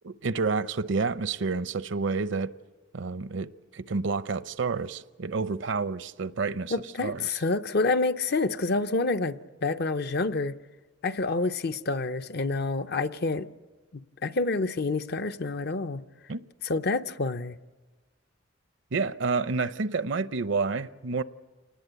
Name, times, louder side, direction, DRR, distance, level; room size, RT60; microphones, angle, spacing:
voice 1, 0.0-2.5 2.9-6.7 7.0-7.2 16.3-16.4 18.9-21.2, right 4 dB, 70° right, 0.7 m, -29 dB
voice 2, 6.7-10.6 11.0-13.5 13.9-16.0 16.6-17.6, left 3 dB, 55° left, 0.7 m, -28 dB
27.5 x 19.5 x 8.1 m
head